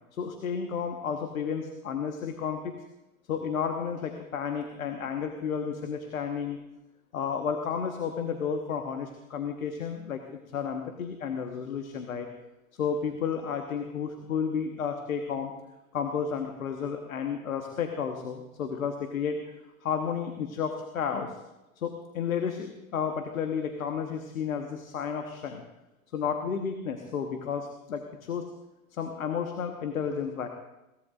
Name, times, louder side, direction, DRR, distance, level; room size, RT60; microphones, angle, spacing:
voice 1, 0.1-2.7 3.3-6.6 7.1-12.3 12.7-15.5 15.9-19.5 19.8-21.4 21.7-25.6 26.1-28.4 28.9-30.5, left 7 dB, 70° left, 5 dB, 1.5 m, -32 dB
21.5 x 18.5 x 2.6 m, 0.96 s
figure-of-eight pair, 100°, 43 cm